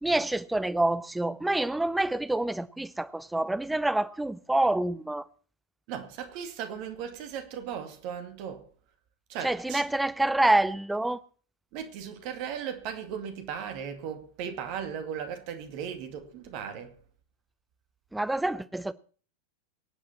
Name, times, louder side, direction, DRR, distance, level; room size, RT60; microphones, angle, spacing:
voice 1, 0.0-5.2 9.4-11.2 18.1-18.9, right 1 dB, 5° right, 0.7 m, -27 dB
voice 2, 5.9-8.7 9.3-9.8 11.7-16.9, right 8 dB, 45° right, 2.3 m, -37 dB
24.5 x 8.6 x 4.4 m
figure-of-eight pair, 90°, 0 cm